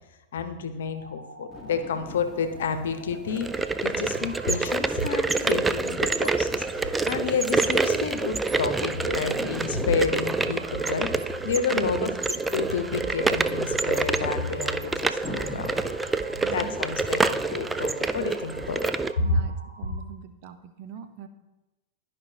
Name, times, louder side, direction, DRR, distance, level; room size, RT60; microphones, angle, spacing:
voice 1, 0.3-3.5 3.8-11.1 11.4-12.1 12.5-15.9 16.5-18.9, left 5 dB, 60° left, 9 dB, 0.8 m, -30 dB
sound 1, 0.7-20.2, right 1 dB, 85° right, 0.9 m, -45 dB
sound 2, 1.5-17.9, left 1 dB, 5° left, 1.3 m, -44 dB
sound 3, 3.3-19.1, right 3 dB, 10° right, 0.3 m, -27 dB
voice 2, 11.7-12.2 16.4-16.8 19.2-21.3, right 7 dB, 45° right, 8 dB, 0.7 m, -41 dB
12.0 x 5.1 x 2.9 m, 1.1 s
figure-of-eight pair, 90°, 0 cm